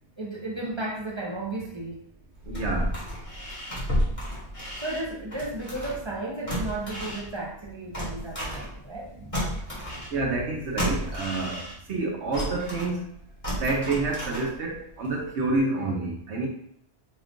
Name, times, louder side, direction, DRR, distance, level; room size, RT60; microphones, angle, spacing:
voice 1, 0.2-2.0 4.8-9.4 9.7-10.0 10.3-10.4, right 2 dB, 30° right, -1 dB, 0.7 m, -34 dB
sound 1, 2.3-6.1 6.5-9.1 9.3-12.0 12.3-14.8 15.2-15.3, equal, 30° left, 1.8 m, -32 dB
voice 2, 2.5-2.9 10.1-11.6 11.9-13.0 13.6-16.5, right 3 dB, 80° right, -1 dB, 1.1 m, -28 dB
5.3 x 2.4 x 3.6 m, 0.69 s
omnidirectional pair, 1.1 m